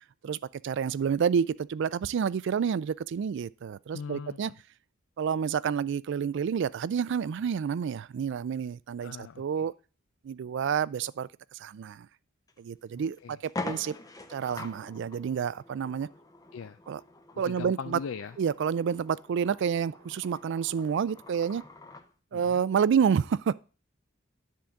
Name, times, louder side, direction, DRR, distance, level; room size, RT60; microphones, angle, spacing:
voice 1, 0.6-4.5 5.2-9.7 10.2-12.1 12.6-13.9 14.3-16.1 16.9-17.0 17.4-18.0 18.4-21.6 22.3-23.5, right 7 dB, 65° right, 0.3 m, -29 dB
voice 2, 3.9-4.4 9.0-9.4 13.2-13.4 16.5-16.8 17.5-18.3 22.3-22.6, left 6 dB, 80° left, 0.4 m, -39 dB
sound 1, 12.5-12.6 13.0-13.1 13.4-22.1, left 2 dB, 20° left, 0.7 m, -44 dB
10.5 x 3.7 x 7.0 m
head